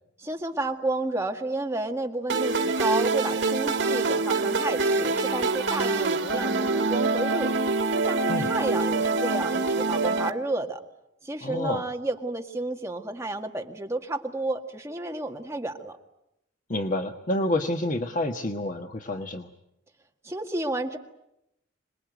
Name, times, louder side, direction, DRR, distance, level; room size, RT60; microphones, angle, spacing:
voice 1, 0.2-7.5 7.9-10.8 11.2-16.0 20.2-21.0, right 2 dB, 15° right, 3 dB, 1.8 m, -31 dB
sound 1, 2.3-10.3, right 3 dB, 90° right, 1.8 m, -25 dB
voice 2, 11.4-11.8 16.7-19.5, left 1 dB, 45° left, 4 dB, 1.4 m, -28 dB
27.0 x 20.5 x 9.2 m, 0.85 s
head